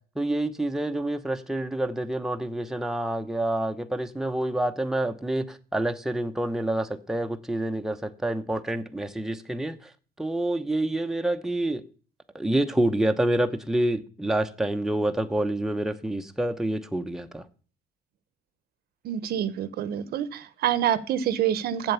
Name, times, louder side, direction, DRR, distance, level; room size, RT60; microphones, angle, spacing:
voice 1, 0.2-9.9 10.2-11.8 12.3-17.4, right 1 dB, 5° right, 0.9 m, -27 dB
voice 2, 19.0-21.9, right 10 dB, 65° right, 0.9 m, -27 dB
7.8 x 7.6 x 6.9 m
cardioid pair, 110°, 17 cm